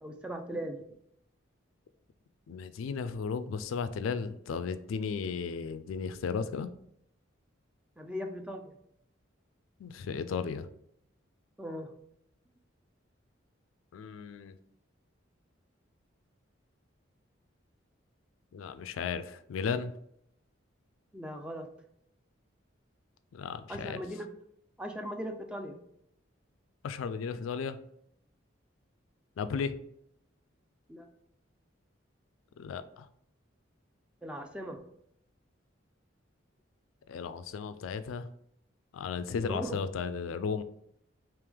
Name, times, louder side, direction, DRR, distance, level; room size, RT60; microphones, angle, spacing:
voice 1, 0.0-0.8 8.0-8.7 11.6-11.9 21.1-21.7 23.7-24.3 24.8-25.8 30.9-31.1 34.2-34.8 39.4-39.8, equal, 5° right, 4 dB, 0.3 m, -38 dB
voice 2, 2.5-6.7 9.8-10.7 13.9-14.5 18.5-19.9 23.3-24.0 26.8-27.8 29.4-29.7 32.6-33.1 37.1-38.3 38.9-40.6, left 5 dB, 90° left, 12 dB, 0.3 m, -35 dB
3.3 x 3.0 x 3.5 m, 0.73 s
head